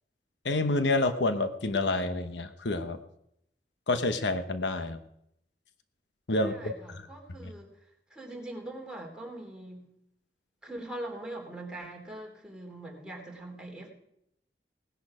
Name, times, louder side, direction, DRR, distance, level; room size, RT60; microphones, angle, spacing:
voice 1, 0.4-3.0 3.9-5.0 6.3-7.0 7.4-7.5, left 2 dB, 90° left, 9 dB, 1.1 m, -28 dB
voice 2, 6.4-7.7 8.1-9.8 10.6-13.9, right 1 dB, 5° right, -1 dB, 3.2 m, -42 dB
18.5 x 10.5 x 5.0 m, 0.76 s
head